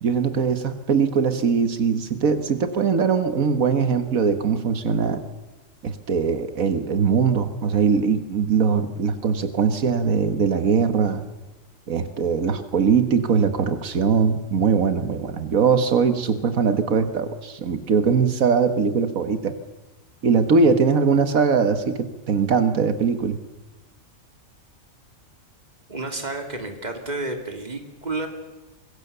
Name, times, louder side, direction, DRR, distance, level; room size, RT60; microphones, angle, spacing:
voice 1, 0.0-5.2 5.8-11.2 11.9-19.5 20.2-23.4, right 5 dB, 90° right, 9 dB, 1.8 m, -21 dB
voice 2, 25.9-28.3, right 2 dB, 30° right, 4 dB, 2.9 m, -30 dB
25.0 x 22.5 x 6.8 m, 1.1 s
omnidirectional pair, 1.4 m